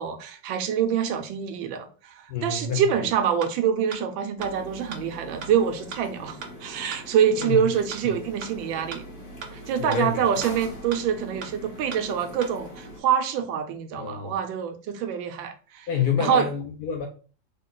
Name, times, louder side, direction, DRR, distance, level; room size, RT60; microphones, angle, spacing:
voice 1, 0.0-9.0 9.5-15.9 16.2-16.5, right 8 dB, 85° right, 1.3 m, -26 dB
voice 2, 2.3-2.8 7.4-7.6 9.8-10.2 14.0-14.3 15.9-17.1, left 7 dB, 70° left, 0.9 m, -27 dB
sound 1, 3.4-3.5 3.9-4.0 4.4-4.5 4.9-5.0 5.4-5.5 5.9-6.0 6.4-6.5 6.9-7.0 7.4-7.5 7.9-8.0 8.4-8.5 8.9-9.0 9.4-9.5 9.9-10.0 10.4-10.5 10.9-11.0 11.4-11.5 11.9-12.0 12.4-12.5, right 6 dB, 65° right, 1.1 m, -36 dB
sound 2, 4.4-13.0, equal, 40° left, 1.6 m, -42 dB
3.7 x 2.3 x 3.7 m
omnidirectional pair, 2.1 m